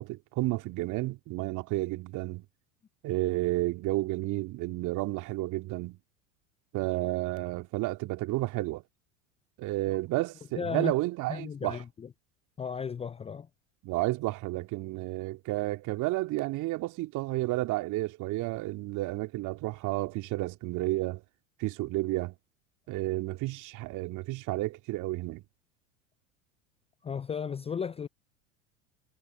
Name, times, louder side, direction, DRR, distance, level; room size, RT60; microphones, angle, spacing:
voice 1, 0.0-2.4 3.0-6.0 6.7-8.8 9.6-11.8 13.8-21.2 21.6-22.3 22.9-25.4, right 19 dB, 45° right, 2.5 m, -31 dB
voice 2, 10.6-10.9 11.3-12.1 12.6-13.5 27.0-28.1, left 6 dB, 15° left, 0.6 m, -35 dB
figure-of-eight pair, 80°, 41 cm